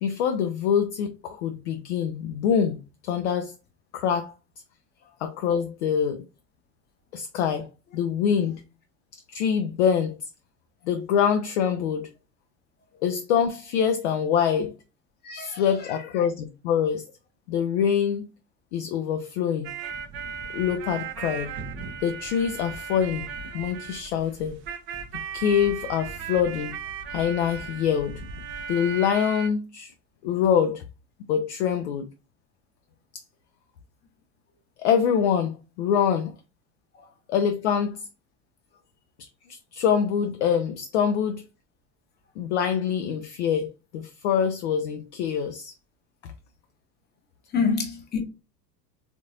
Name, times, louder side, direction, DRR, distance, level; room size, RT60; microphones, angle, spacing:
voice 1, 0.0-3.5 3.9-4.3 5.2-6.2 7.1-7.7 7.9-8.6 9.1-10.1 10.9-12.1 13.0-14.7 15.3-17.0 17.5-18.3 18.7-19.7 20.5-21.5 22.0-23.3 23.5-24.6 25.3-26.8 27.1-28.1 28.7-29.9 30.2-30.9 31.3-32.1 33.1-33.2 34.8-36.3 37.3-38.0 39.2-41.4 42.4-45.7 46.2-46.3, left 8 dB, 45° left, 0.5 m, -25 dB
voice 2, 15.2-16.0 47.5-48.2, left 5 dB, 20° left, 0.8 m, -27 dB
sound 1, 19.6-29.5, right 6 dB, 25° right, 0.5 m, -36 dB
3.7 x 2.5 x 2.7 m
figure-of-eight pair, 80°, 49 cm